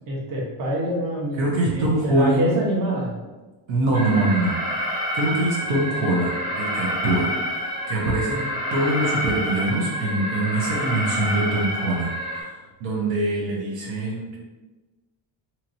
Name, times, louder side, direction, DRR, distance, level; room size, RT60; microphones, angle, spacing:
voice 1, 0.1-3.1, right 1 dB, 45° right, -3 dB, 0.9 m, -25 dB
voice 2, 1.4-2.6 3.7-4.5 5.1-14.4, right 2 dB, 70° right, -3 dB, 0.8 m, -24 dB
Alarm, 3.9-12.4, equal, 10° right, 0.5 m, -28 dB
2.9 x 2.9 x 2.6 m, 1.2 s
cardioid pair, 130°, 47 cm